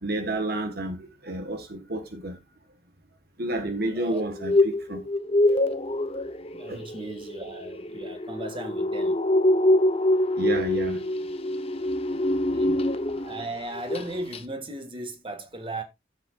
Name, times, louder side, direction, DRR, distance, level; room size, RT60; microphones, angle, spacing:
voice 1, 0.0-2.4 3.4-5.0 5.5-5.6 6.6-6.9 10.4-11.1 12.2-12.8 13.1-13.3, right 1 dB, 60° right, 1.4 m, -31 dB
voice 2, 3.9-4.3 6.5-9.2 12.1-12.8 13.2-15.8, right 2 dB, 30° right, 1.8 m, -37 dB
sound 1, 4.2-13.4 13.7-14.1 14.3-14.4, left 1 dB, 35° left, 0.9 m, -25 dB
14.0 x 7.3 x 2.4 m
head